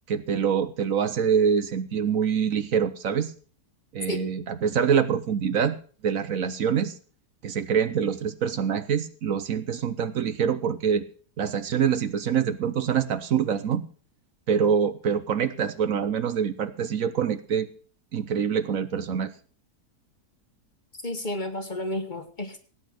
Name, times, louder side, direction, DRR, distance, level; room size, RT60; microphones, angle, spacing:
voice 1, 0.1-3.3 3.9-5.8 6.0-7.0 7.4-11.0 11.4-13.8 14.5-17.7 18.1-19.3, right 7 dB, 60° right, 12 dB, 1.2 m, -25 dB
voice 2, 21.0-22.6, left 1 dB, 30° left, 8 dB, 1.4 m, -31 dB
17.5 x 8.9 x 6.2 m, 0.41 s
omnidirectional pair, 1.7 m